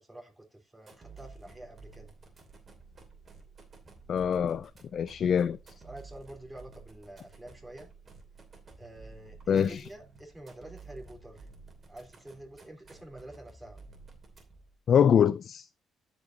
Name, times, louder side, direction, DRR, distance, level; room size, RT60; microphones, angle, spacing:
voice 1, 0.0-2.1 5.8-7.9 8.8-11.5 11.9-13.8, right 1 dB, 10° right, 3.4 m, -48 dB
sound 1, 0.8-14.8, right 3 dB, 35° right, 2.7 m, -52 dB
voice 2, 4.1-5.6 9.5-9.8 14.9-15.7, left 8 dB, 60° left, 0.3 m, -24 dB
13.5 x 5.3 x 2.7 m
cardioid pair, 90°, 0 cm